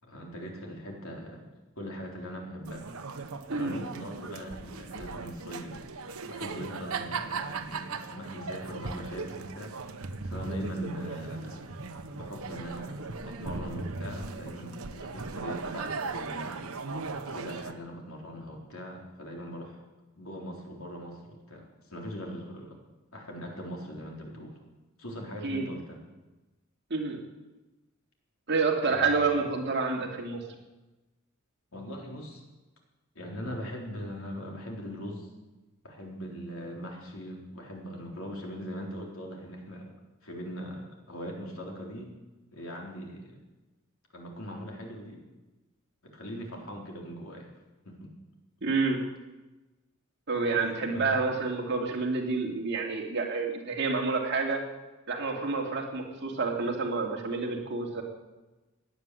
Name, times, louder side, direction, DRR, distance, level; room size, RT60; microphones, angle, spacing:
voice 1, 0.0-1.5 1.8-2.8 3.5-5.8 6.2-9.7 10.2-11.7 12.1-16.6 17.3-19.8 20.1-22.8 23.1-24.6 25.0-26.0 28.8-29.3 31.7-32.4 33.1-35.3 35.8-39.9 40.2-42.1 42.5-43.4 44.1-45.2 46.0-47.5 47.8-48.1 50.4-51.3, equal, 75° left, 0 dB, 3.9 m, -41 dB
sound 1, 2.6-17.7, right 4 dB, 85° right, 1.1 m, -38 dB
voice 2, 26.9-27.2 28.5-30.4 48.6-49.1 50.3-54.6 55.1-58.0, right 4 dB, 55° right, 0 dB, 2.7 m, -28 dB
17.0 x 10.0 x 7.8 m, 1.1 s
head